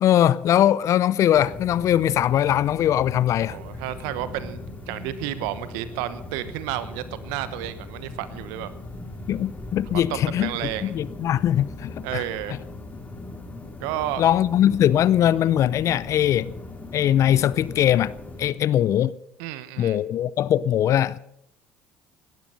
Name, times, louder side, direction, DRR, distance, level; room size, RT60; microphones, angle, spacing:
voice 1, 0.0-3.6 9.3-10.5 10.8-12.2 14.2-16.5 16.9-18.1 18.4-19.2 19.8-21.2, left 11 dB, 55° left, 0.5 m, -21 dB
sound 1, 1.3-18.5, left 2 dB, 25° left, 2.8 m, -39 dB
voice 2, 3.4-8.7 9.9-10.9 12.0-12.6 13.8-14.2 19.4-20.0, right 13 dB, 75° right, 1.0 m, -31 dB
17.0 x 12.0 x 5.5 m
hypercardioid pair, 60°, 6 cm